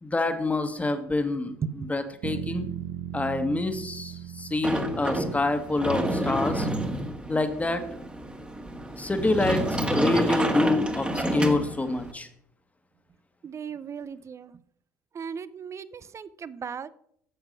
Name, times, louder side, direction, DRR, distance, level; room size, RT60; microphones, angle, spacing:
voice 1, 0.0-1.5 1.9-2.7 3.1-6.7 7.3-7.8 9.0-12.3, left 2 dB, 15° left, 1.5 m, -27 dB
sound 1, 2.2-6.3, right 11 dB, 70° right, 0.8 m, -38 dB
Sliding door, 4.6-12.1, right 1 dB, 10° right, 1.5 m, -29 dB
voice 2, 13.4-14.6 15.1-16.9, right 6 dB, 35° right, 0.6 m, -38 dB
10.0 x 7.1 x 5.3 m
hypercardioid pair, 65°, 8 cm